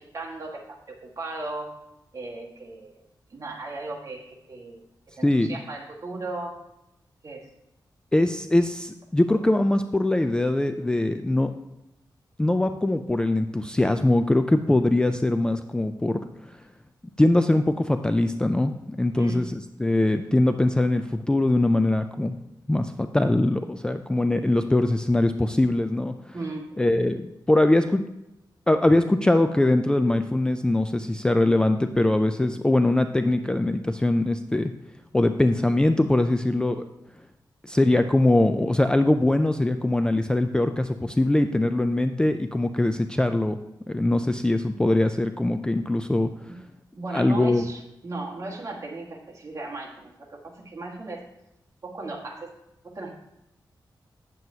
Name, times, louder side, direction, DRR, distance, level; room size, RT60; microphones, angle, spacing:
voice 1, 0.0-1.8 2.1-3.0 3.3-4.8 5.2-6.6 7.2-7.5 9.3-9.4 19.2-19.5 26.3-26.7 46.5-46.6 46.9-51.2 51.8-52.5 52.8-53.1, right 2 dB, 45° right, -2 dB, 1.6 m, -36 dB
voice 2, 5.2-5.6 8.1-11.5 12.4-16.2 17.2-18.7 19.0-22.3 22.7-26.3 26.8-28.0 28.7-34.7 35.1-36.8 37.6-43.6 43.9-46.3 47.1-47.6, left 1 dB, 10° left, 8 dB, 0.3 m, -22 dB
9.0 x 7.7 x 2.8 m, 0.89 s
wide cardioid pair, 120°, 8 cm